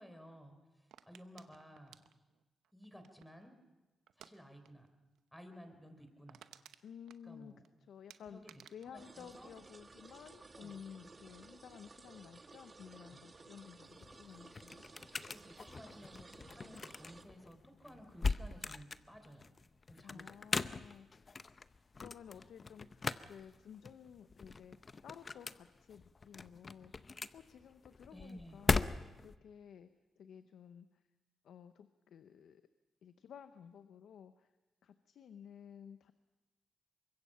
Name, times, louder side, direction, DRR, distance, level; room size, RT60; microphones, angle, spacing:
voice 1, 0.0-2.0 2.7-3.6 4.2-4.9 5.3-6.5 7.2-7.6 8.2-9.5 10.5-10.8 13.0-13.2 15.2-19.5 19.9-20.4 28.1-28.7, equal, 5° left, 7 dB, 4.0 m, -55 dB
sound 1, 0.9-3.5 4.1-4.3 4.6-4.9 5.1-5.2 5.7-5.8 6.0-7.7 8.1-10.1 10.4-10.9, right 10 dB, 85° right, 0.8 m, -59 dB
voice 2, 6.8-7.5 7.9-14.9 20.0-21.4 22.0-26.9 27.3-29.9 30.2-31.0 31.4-32.6 33.0-34.5 34.8-36.1, left 8 dB, 80° left, 10 dB, 0.8 m, -54 dB
Garden Fountain, 8.9-17.2, right 3 dB, 35° right, 1.3 m, -57 dB
sound 2, 13.8-29.4, left 4 dB, 40° left, 0.7 m, -40 dB
24.0 x 22.0 x 5.7 m, 1.1 s
cardioid pair, 65°, 0 cm